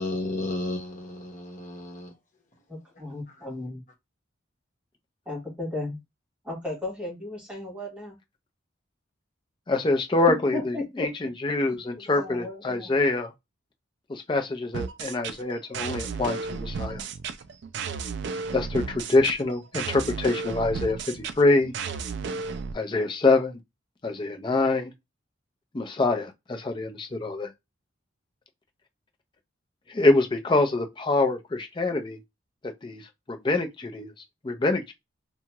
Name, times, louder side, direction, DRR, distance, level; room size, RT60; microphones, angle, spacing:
voice 1, 0.0-2.1, left 2 dB, 40° left, 1.1 m, -32 dB
voice 2, 2.7-3.8 5.3-6.0 6.4-8.1 10.3-11.1 11.7-12.9, left 2 dB, 5° right, 1.2 m, -35 dB
voice 3, 9.7-13.3 14.1-17.0 18.5-21.7 22.7-23.6 24.0-24.9 25.7-27.5 29.9-32.2 32.6-34.1 34.4-34.9, left 2 dB, 25° left, 0.4 m, -25 dB
sound 1, 14.7-22.7, right 5 dB, 60° right, 0.3 m, -33 dB
2.8 x 2.2 x 2.9 m
head